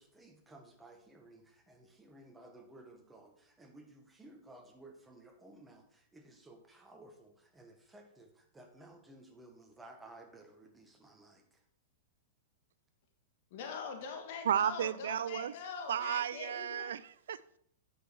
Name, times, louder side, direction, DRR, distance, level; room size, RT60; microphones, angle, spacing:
voice 1, 0.0-11.6, right 2 dB, 10° right, 3 dB, 1.6 m, -56 dB
voice 2, 13.5-16.9, left 5 dB, 60° left, 4 dB, 1.7 m, -43 dB
voice 3, 14.5-15.5 15.9-17.6, right 9 dB, 75° right, 18 dB, 0.4 m, -33 dB
9.1 x 6.5 x 4.5 m, 0.67 s
hypercardioid pair, 115°, 0 cm